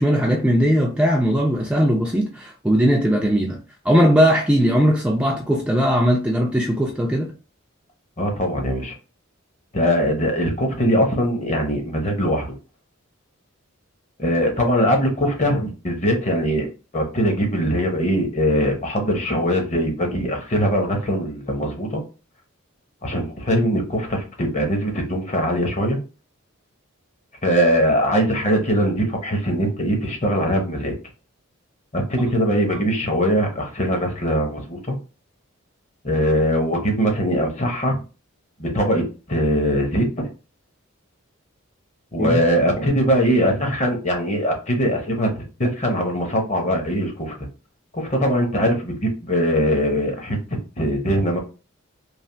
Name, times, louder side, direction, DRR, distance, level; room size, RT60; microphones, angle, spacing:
voice 1, 0.0-3.6 3.8-7.3 42.2-42.4, equal, 5° right, 0.3 m, -19 dB
voice 2, 8.2-8.9 9.7-12.5 14.2-16.7 16.9-22.0 23.0-26.0 27.4-30.9 31.9-35.0 36.0-38.0 38.6-40.3 42.1-47.3 47.9-50.4 50.8-51.4, equal, 35° left, 0.8 m, -21 dB
3.2 x 2.5 x 2.6 m
head